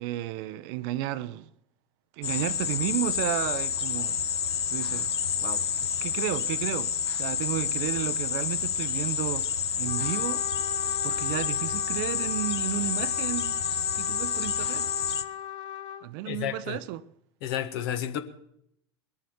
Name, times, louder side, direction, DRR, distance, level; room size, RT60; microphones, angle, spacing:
voice 1, 0.0-1.5 2.2-4.2 4.7-5.1 5.4-5.7 6.0-10.4 11.0-13.6 13.9-14.9 16.0-17.0, right 14 dB, 55° right, 0.6 m, -33 dB
sound 1, 2.2-15.2, left 7 dB, 80° left, 0.8 m, -29 dB
Trumpet, 9.9-16.1, left 10 dB, 40° left, 1.2 m, -39 dB
voice 2, 16.3-16.8 17.4-18.2, left 10 dB, 60° left, 1.4 m, -31 dB
21.5 x 7.2 x 6.4 m
figure-of-eight pair, 80°, 14 cm